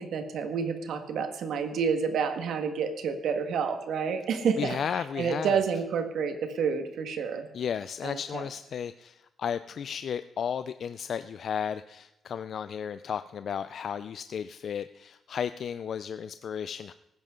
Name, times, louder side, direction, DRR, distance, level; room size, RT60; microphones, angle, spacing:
voice 1, 0.0-4.8 5.1-7.5 8.0-8.4, right 6 dB, 75° right, 7 dB, 1.7 m, -29 dB
voice 2, 4.6-5.6 7.5-16.9, left 7 dB, 55° left, 12 dB, 0.4 m, -34 dB
19.0 x 10.5 x 3.8 m, 0.97 s
cardioid pair, 130°, 0 cm